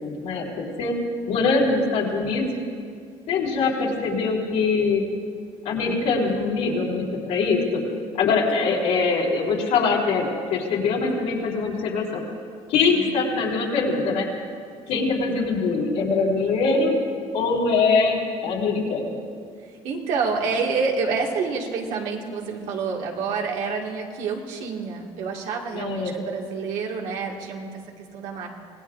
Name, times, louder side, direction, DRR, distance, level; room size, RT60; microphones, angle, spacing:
voice 1, 0.0-0.9 1.3-2.5 3.3-5.0 5.6-7.8 8.2-12.2 12.7-14.3 14.9-16.9 17.3-19.2 25.7-26.1, left 4 dB, 80° left, -2 dB, 3.7 m, -23 dB
voice 2, 19.8-28.5, right 5 dB, 85° right, -1 dB, 2.2 m, -28 dB
25.5 x 18.0 x 2.6 m, 2.2 s
cardioid pair, 125°, 12 cm